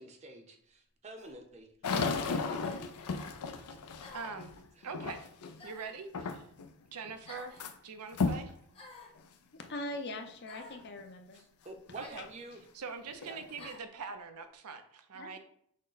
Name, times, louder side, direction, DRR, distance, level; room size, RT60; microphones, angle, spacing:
voice 1, 0.0-1.7 2.0-2.5 4.8-4.9 11.3-12.6 13.2-13.4, right 1 dB, 30° right, 4 dB, 0.6 m, -49 dB
sound 1, 1.2-1.4 2.6-2.8 4.0-4.4 5.6-6.0 7.3-7.6 8.7-9.2 10.5-10.8 12.0-12.3 13.6-13.9, left 2 dB, 25° left, 0.9 m, -51 dB
sound 2, 1.8-5.6 6.1-6.7 7.0-7.7 8.1-8.5 9.2-9.3 9.9-10.0 12.5-12.6 13.1-13.7, left 4 dB, 90° left, 0.5 m, -35 dB
voice 2, 4.1-4.5 4.8-5.3 5.6-6.5 6.9-8.5 12.0-12.3 12.7-15.4, right 5 dB, 90° right, 7 dB, 0.6 m, -43 dB
voice 3, 9.5-11.4 15.1-15.4, left 1 dB, 50° left, 4 dB, 0.6 m, -41 dB
6.3 x 2.1 x 3.9 m, 0.67 s
head